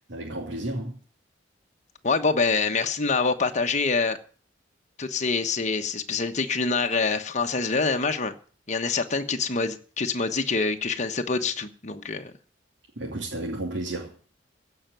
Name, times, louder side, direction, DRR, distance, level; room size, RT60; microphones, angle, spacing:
voice 1, 0.1-1.0 13.0-14.1, right 1 dB, 75° right, 2.9 m, -32 dB
voice 2, 2.0-4.2 5.0-8.3 8.7-12.3, left 4 dB, 40° left, 1.1 m, -25 dB
16.0 x 5.8 x 9.2 m
head